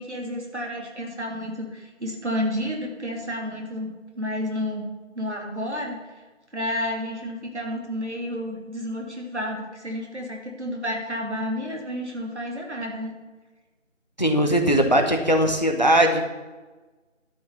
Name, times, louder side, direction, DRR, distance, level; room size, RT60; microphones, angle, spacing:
voice 1, 0.0-4.9 5.1-6.0 6.5-13.1, left 1 dB, 60° right, 0 dB, 2.8 m, -31 dB
voice 2, 14.2-16.2, equal, 35° left, 5 dB, 1.0 m, -19 dB
12.0 x 5.7 x 7.0 m, 1.2 s
figure-of-eight pair, 175°, 38 cm